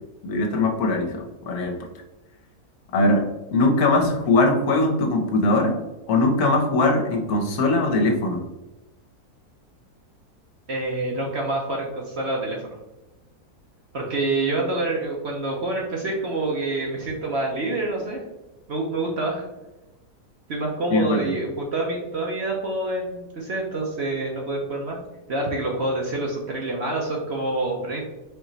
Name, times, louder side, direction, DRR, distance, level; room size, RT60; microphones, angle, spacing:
voice 1, 0.2-1.8 2.9-5.8 6.1-8.4 20.9-21.3, left 2 dB, 70° left, 2 dB, 1.3 m, -21 dB
voice 2, 10.7-12.8 13.9-18.2 18.7-19.5 20.5-25.0 25.3-28.0, right 2 dB, 55° right, -1 dB, 0.8 m, -27 dB
4.4 x 3.0 x 3.9 m, 1.0 s
omnidirectional pair, 1.7 m